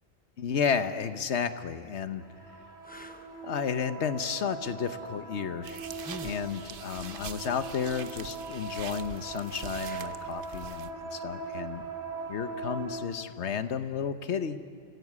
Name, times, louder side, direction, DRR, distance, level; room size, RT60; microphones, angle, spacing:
voice 1, 0.4-2.2 3.4-5.8 6.2-11.8 12.3-14.6, left 6 dB, 80° left, 11 dB, 1.2 m, -32 dB
sound 1, 2.1-2.2 2.8-3.3 5.9-6.5 9.7-10.4 13.3-13.5, left 1 dB, 10° left, 0.8 m, -46 dB
sound 2, 2.1-13.0, right 4 dB, 75° right, 3.1 m, -40 dB
sound 3, 5.6-10.9, right 7 dB, 55° right, 0.9 m, -44 dB
28.0 x 16.0 x 8.4 m, 2.2 s
omnidirectional pair, 1.1 m